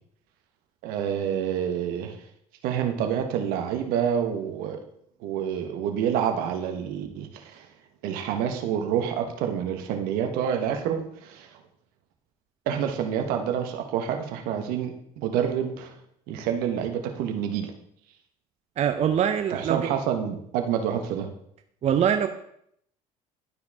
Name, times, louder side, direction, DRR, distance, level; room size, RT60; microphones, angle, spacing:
voice 1, 0.8-2.2 2.6-4.8 5.2-7.7 8.0-11.6 12.7-16.0 16.3-17.7 19.5-21.3, right 8 dB, 75° right, 5 dB, 1.2 m, -28 dB
voice 2, 18.8-19.9 21.8-22.3, right 9 dB, 45° right, 7 dB, 0.6 m, -23 dB
11.5 x 4.7 x 3.5 m, 0.70 s
supercardioid pair, 80°, 15 cm